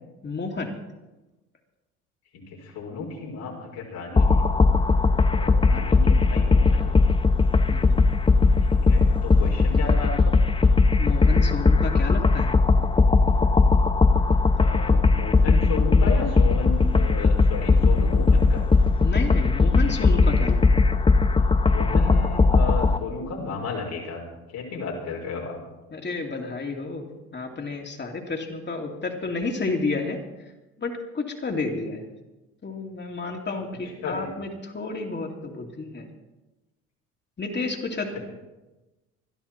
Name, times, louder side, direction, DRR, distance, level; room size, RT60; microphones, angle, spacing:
voice 1, 0.2-0.8 5.7-6.1 7.7-8.1 11.0-12.6 19.0-20.9 25.9-30.2 30.8-32.1 32.6-36.1 37.4-38.2, left 3 dB, 30° left, 2 dB, 2.7 m, -31 dB
voice 2, 2.7-4.4 5.3-6.9 8.9-10.3 14.6-18.6 21.6-24.3 24.5-25.6 34.0-34.3, left 4 dB, 70° left, -3 dB, 4.5 m, -33 dB
sound 1, 4.2-23.0, left 3 dB, 15° left, 0.7 m, -19 dB
21.0 x 12.0 x 4.4 m, 1.1 s
hypercardioid pair, 70°, 35 cm